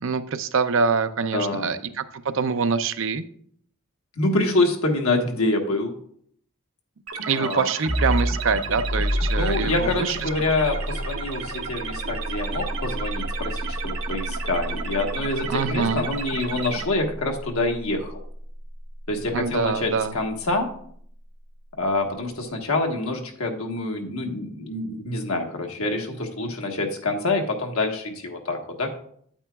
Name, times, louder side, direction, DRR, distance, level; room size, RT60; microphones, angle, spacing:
voice 1, 0.0-2.0 2.3-3.2 7.3-10.3 15.5-16.0 19.3-20.1, right 5 dB, 60° right, 11 dB, 0.5 m, -25 dB
voice 2, 1.3-1.7 4.2-5.9 7.3-7.7 9.4-18.2 19.1-20.7 21.8-28.9, left 2 dB, 80° left, 2 dB, 1.3 m, -26 dB
sound 1, 7.1-16.8, right 5 dB, 80° right, 0.9 m, -34 dB
Sub Impact, 7.9-19.3, equal, 5° left, 0.8 m, -30 dB
9.1 x 8.7 x 2.3 m, 0.62 s
head